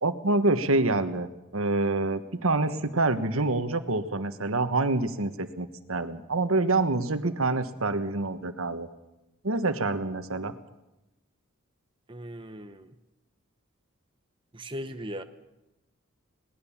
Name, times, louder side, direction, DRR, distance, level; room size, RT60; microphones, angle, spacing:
voice 1, 0.0-8.9 9.4-10.5, right 2 dB, 75° right, 10 dB, 1.4 m, -26 dB
voice 2, 12.1-12.9 14.5-15.2, equal, 25° right, 7 dB, 0.9 m, -38 dB
21.0 x 19.0 x 7.3 m, 0.95 s
head